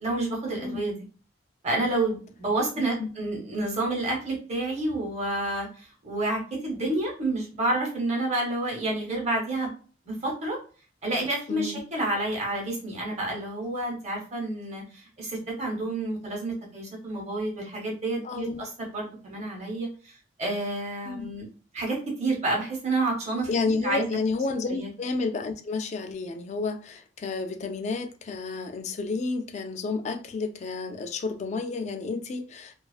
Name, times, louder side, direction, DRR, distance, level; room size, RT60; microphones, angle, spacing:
voice 1, 0.0-0.9 1.6-9.7 10.0-10.6 11.0-21.4 21.7-23.5 23.8-24.1 24.7-24.9, right 2 dB, 35° right, 0.9 m, -29 dB
voice 2, 11.5-11.8 18.2-18.7 21.1-21.3 23.5-32.7, left 4 dB, 40° left, 0.3 m, -31 dB
2.4 x 2.3 x 2.3 m
head